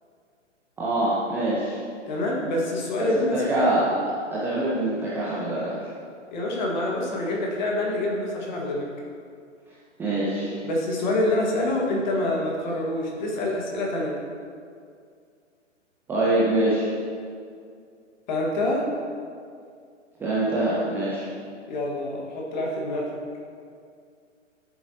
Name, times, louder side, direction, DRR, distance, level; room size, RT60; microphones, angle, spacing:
voice 1, 0.8-1.8 3.1-3.9 4.3-5.7 10.0-10.6 16.1-16.9 20.2-21.2, right 1 dB, 5° right, -8 dB, 0.7 m, -24 dB
voice 2, 2.1-3.7 6.3-8.9 10.6-14.2 18.3-18.9 21.7-23.2, left 1 dB, 35° left, -2 dB, 1.9 m, -26 dB
12.0 x 7.2 x 2.9 m, 2.2 s
figure-of-eight pair, 125°, 37 cm